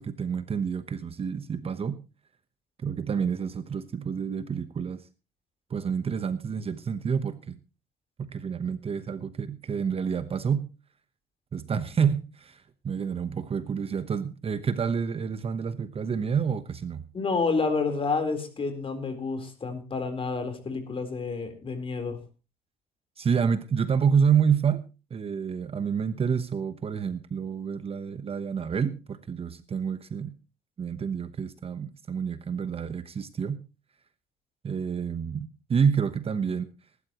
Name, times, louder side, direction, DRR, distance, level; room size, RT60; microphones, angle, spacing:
voice 1, 0.0-2.0 2.8-5.0 5.7-7.6 8.2-10.7 11.5-17.0 23.2-24.8 25.1-30.3 30.8-33.6 34.6-36.7, right 6 dB, 35° right, 12 dB, 1.1 m, -28 dB
voice 2, 17.1-22.2, left 4 dB, 30° left, 7 dB, 4.0 m, -29 dB
20.0 x 12.0 x 3.0 m, 0.31 s
cardioid pair, 110°, 17 cm